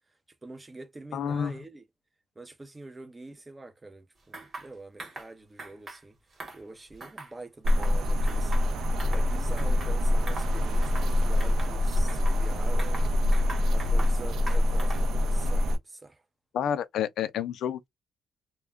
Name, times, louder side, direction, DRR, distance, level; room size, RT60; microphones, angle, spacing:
voice 1, 0.4-1.8 2.4-6.2 6.5-13.1 13.5-16.2, right 2 dB, 15° right, 0.5 m, -45 dB
voice 2, 1.1-1.5 16.5-17.9, left 8 dB, 75° left, 0.4 m, -29 dB
sound 1, 4.3-4.7 5.0-5.3 5.6-6.0 6.3-7.4 7.7-8.0 8.3-9.3 9.6-9.9 10.3-10.5 10.8-11.1 11.4-12.4 12.8-14.2 14.5-15.2, right 2 dB, 30° right, 1.0 m, -42 dB
sound 2, 7.6-15.8, left 1 dB, 70° right, 0.6 m, -25 dB
2.2 x 2.1 x 3.4 m
cardioid pair, 145°, 0 cm